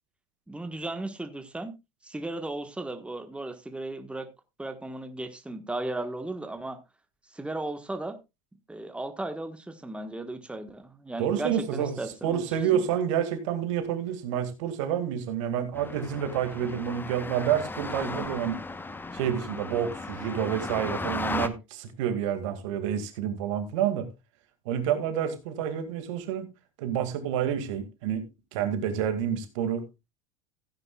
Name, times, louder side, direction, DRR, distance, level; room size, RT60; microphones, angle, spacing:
voice 1, 0.5-1.7 2.0-4.3 4.6-6.8 7.3-8.2 8.7-12.4 12.7-12.8, right 2 dB, 5° right, 1.4 m, -35 dB
voice 2, 11.2-18.6 19.1-24.1 24.7-26.5 26.8-28.2 28.5-29.8, right 9 dB, 70° right, 2.2 m, -29 dB
sound 1, 15.7-21.5, left 3 dB, 10° left, 1.0 m, -35 dB
15.5 x 9.7 x 2.4 m
hypercardioid pair, 85°, 17 cm